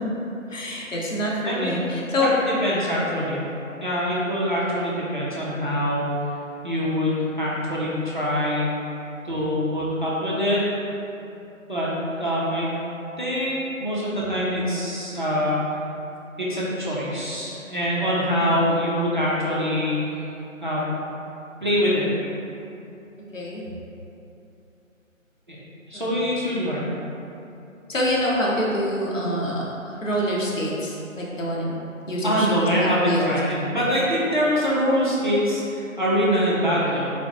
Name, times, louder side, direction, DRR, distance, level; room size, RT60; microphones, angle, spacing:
voice 1, 0.5-2.3 18.3-18.6 23.3-23.6 25.9-26.3 27.9-31.7 32.1-33.4, equal, 70° left, -4 dB, 0.9 m, -26 dB
voice 2, 1.4-1.9 2.1-3.4 3.8-6.1 6.6-8.7 9.2-10.6 11.7-11.9 12.2-12.7 13.2-15.6 16.4-20.2 20.6-20.9 21.6-22.1 25.5-25.6 25.9-26.9 32.2-37.1, equal, 35° right, -8 dB, 0.6 m, -24 dB
3.9 x 2.5 x 3.5 m, 2.9 s
figure-of-eight pair, 165°, 40 cm